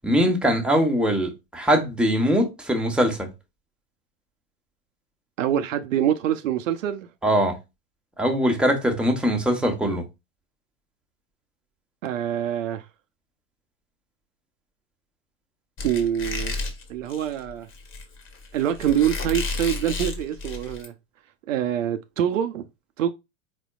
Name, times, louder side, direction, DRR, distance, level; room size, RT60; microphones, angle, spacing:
voice 1, 0.0-3.3 7.2-7.5 8.2-10.0, equal, ahead, 1.2 m, -22 dB
voice 2, 5.4-7.1 12.0-12.8 15.8-16.6 16.9-17.7 18.5-20.9 21.5-22.6 23.0-23.1, right 10 dB, 70° right, 0.7 m, -25 dB
Squeak, 15.8-20.9, left 3 dB, 30° left, 1.4 m, -32 dB
4.4 x 4.1 x 2.4 m
hypercardioid pair, 100°, 40 cm